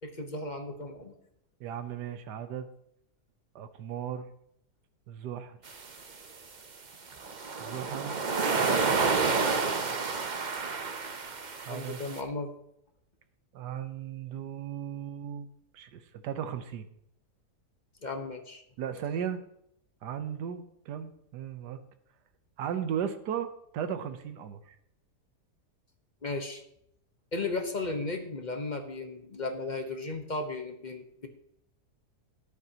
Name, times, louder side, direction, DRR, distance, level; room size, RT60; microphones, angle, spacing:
voice 1, 0.0-1.1 11.7-12.5 18.0-18.6 26.2-26.6 27.3-31.3, left 3 dB, 30° left, 5 dB, 1.0 m, -35 dB
voice 2, 1.6-2.7 3.5-4.3 5.1-5.6 7.6-8.2 11.6-12.0 13.5-15.5 15.7-16.9 18.8-19.4 20.0-21.8 22.6-24.7, right 8 dB, 90° right, 10 dB, 1.4 m, -36 dB
sound 1, 5.7-6.0 7.1-12.2, right 4 dB, 40° right, 0.7 m, -29 dB
13.0 x 11.0 x 2.9 m, 0.76 s
omnidirectional pair, 1.7 m